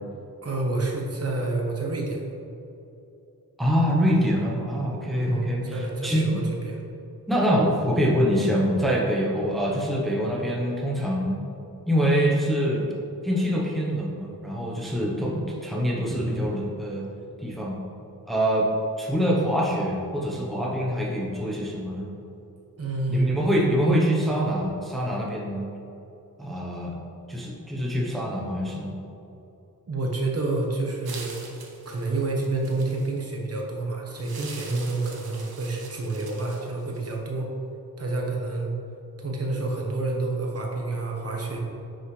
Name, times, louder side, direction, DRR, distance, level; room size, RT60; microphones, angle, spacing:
voice 1, 0.4-2.3 5.1-6.8 22.8-23.3 29.9-31.4 31.8-37.5 38.0-38.7 39.2-41.6, right 2 dB, 40° right, 0 dB, 1.1 m, -28 dB
voice 2, 3.6-6.4 7.3-11.4 11.9-12.9 13.2-17.0 17.4-17.8 18.3-18.7 19.0-22.1 23.1-25.6 26.4-27.0 27.3-29.0, equal, ahead, -4 dB, 0.9 m, -25 dB
sound 1, 31.1-33.2 34.2-37.1, right 4 dB, 80° right, 1.2 m, -43 dB
9.9 x 6.2 x 3.2 m, 2.8 s
wide cardioid pair, 180°, 37 cm